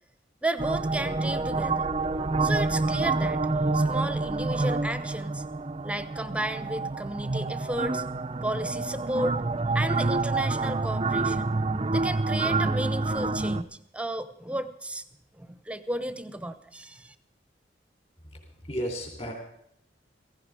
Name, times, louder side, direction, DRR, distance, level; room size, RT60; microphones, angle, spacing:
voice 1, 0.4-1.9 2.4-3.4 3.7-5.4 5.8-8.0 8.4-9.4 9.7-11.5 11.9-15.0 15.4-17.1, right 1 dB, 5° right, 12 dB, 0.9 m, -33 dB
sound 1, 0.6-13.6, right 3 dB, 30° right, 0.6 m, -27 dB
voice 2, 18.3-19.3, equal, 35° left, 2 dB, 3.7 m, -34 dB
16.5 x 16.0 x 4.9 m, 0.73 s
head